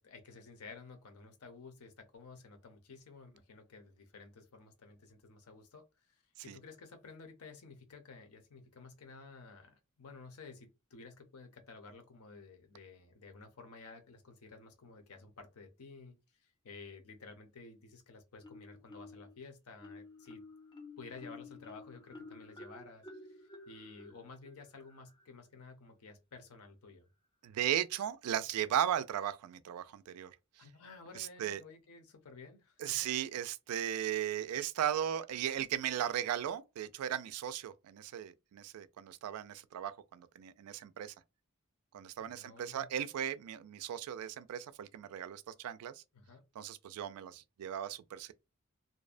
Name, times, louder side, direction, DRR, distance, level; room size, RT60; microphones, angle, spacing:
voice 1, 0.0-20.4 21.0-27.0 30.6-33.1 42.2-42.9 46.1-46.4, left 4 dB, 75° left, 0.6 m, -53 dB
Marimba xylophone, 18.4-19.3 19.8-25.3, left 3 dB, 20° left, 0.4 m, -52 dB
voice 2, 27.4-30.7 31.1-31.6 32.8-41.1 41.9-46.0 46.6-48.3, right 10 dB, 80° right, 0.3 m, -37 dB
2.6 x 2.1 x 2.4 m
head